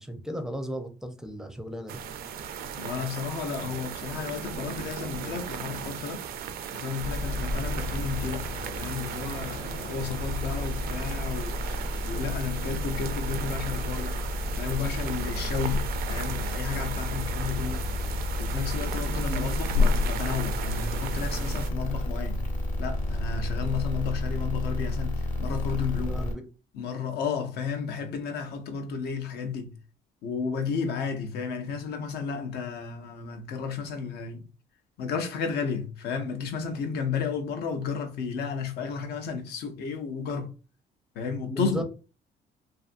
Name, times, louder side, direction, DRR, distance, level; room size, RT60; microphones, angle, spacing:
voice 1, 0.0-2.0 7.4-7.6 19.3-19.5 26.1-26.4 41.5-41.8, equal, 5° right, 0.4 m, -35 dB
sound 1, 1.9-21.7, right 1 dB, 65° right, 0.4 m, -33 dB
voice 2, 2.8-6.2 6.7-8.5 8.8-14.2 14.6-17.9 18.4-22.5 22.8-26.2 26.7-29.7 30.2-34.4 35.0-40.5 41.2-41.8, left 6 dB, 70° left, 0.6 m, -32 dB
sound 2, 7.0-26.3, left 1 dB, 45° left, 1.0 m, -32 dB
2.5 x 2.5 x 2.5 m
cardioid pair, 110°, 17 cm